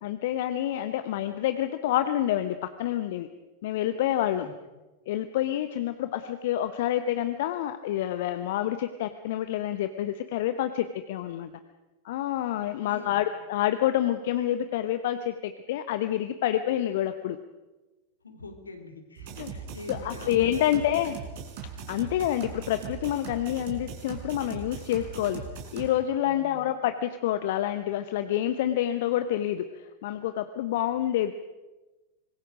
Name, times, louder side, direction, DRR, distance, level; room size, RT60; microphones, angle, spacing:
voice 1, 0.0-3.3 3.6-4.5 5.1-11.5 12.0-17.4 19.4-19.5 19.9-21.1 21.9-25.4 25.7-31.3, left 12 dB, 55° left, 10 dB, 0.9 m, -28 dB
voice 2, 12.9-13.2 18.2-20.8 26.2-26.7, left 2 dB, 75° left, 4 dB, 3.2 m, -44 dB
sound 1, 19.2-25.9, right 6 dB, 50° right, 4.5 m, -40 dB
25.0 x 21.0 x 5.1 m, 1.1 s
figure-of-eight pair, 90°, 0 cm